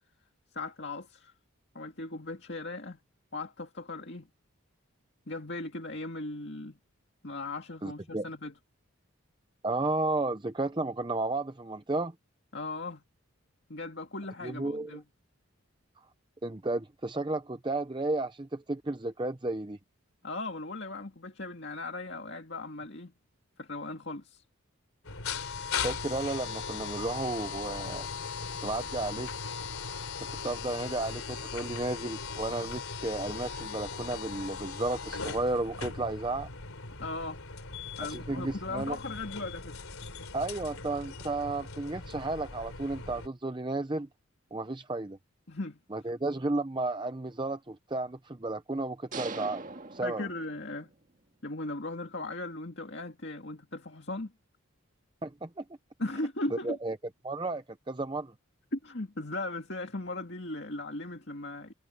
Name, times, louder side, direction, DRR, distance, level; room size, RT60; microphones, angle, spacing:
voice 1, 0.5-1.3 1.7-3.0 3.3-4.3 5.3-6.8 7.2-8.5 12.5-13.0 13.7-15.0 20.2-23.1 23.6-24.4 37.0-37.4 38.0-39.8 45.5-45.8 50.0-50.9 51.4-54.3 56.0-56.8 58.7-61.7, left 2 dB, 50° left, 2.2 m, -38 dB
voice 2, 7.8-8.3 9.6-12.1 14.4-14.9 16.4-19.8 25.8-28.1 28.6-29.3 30.2-36.5 38.1-39.0 40.3-44.1 44.5-45.2 45.9-49.6 49.9-50.3 55.2-55.6 56.6-57.0 57.2-58.3, right 2 dB, 20° right, 0.6 m, -33 dB
sound 1, 25.0-43.3, left 5 dB, 85° left, 3.3 m, -39 dB
sound 2, 49.1-50.9, right 3 dB, 40° right, 1.8 m, -41 dB
head